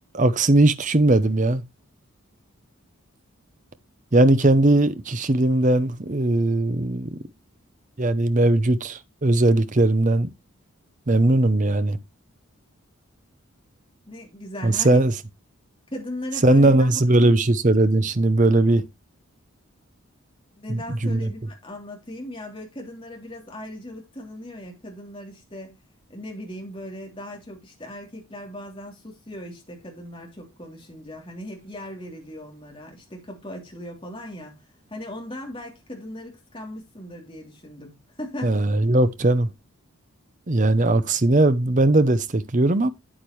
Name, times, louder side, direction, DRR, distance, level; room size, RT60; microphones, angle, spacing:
voice 1, 0.1-1.6 4.1-7.2 8.0-10.3 11.1-12.0 14.6-15.1 16.4-18.8 20.7-21.3 38.4-39.5 40.5-42.9, right 2 dB, 35° right, 0.7 m, -19 dB
voice 2, 14.1-15.0 15.9-17.0 20.6-25.8 26.1-34.6 34.9-38.6, left 1 dB, 25° left, 3.1 m, -38 dB
8.9 x 8.8 x 3.1 m
head